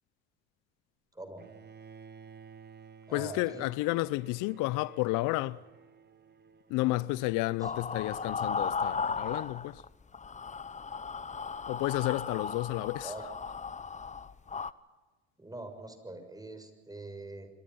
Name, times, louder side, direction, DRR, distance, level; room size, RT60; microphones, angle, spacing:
voice 1, 1.1-1.5 3.1-3.7 7.6-8.0 13.0-13.3 15.4-17.5, right 2 dB, 10° right, 6.8 m, -44 dB
Bowed string instrument, 1.4-7.4, right 6 dB, 30° right, 1.6 m, -54 dB
voice 2, 3.1-5.6 6.7-9.8 11.7-13.1, left 19 dB, 65° left, 0.8 m, -31 dB
sound 1, 7.6-9.9 10.1-14.7, left 5 dB, 20° left, 1.0 m, -36 dB
27.5 x 23.0 x 5.8 m
hypercardioid pair, 70°, 33 cm